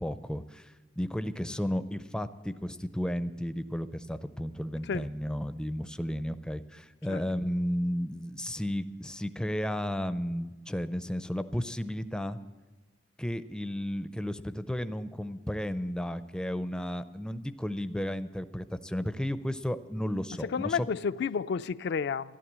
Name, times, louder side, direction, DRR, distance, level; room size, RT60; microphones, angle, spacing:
voice 1, 0.0-12.4 13.2-20.9, equal, 5° left, 0.4 m, -33 dB
voice 2, 20.4-22.4, left 6 dB, 65° left, 0.4 m, -31 dB
14.0 x 11.5 x 7.4 m
head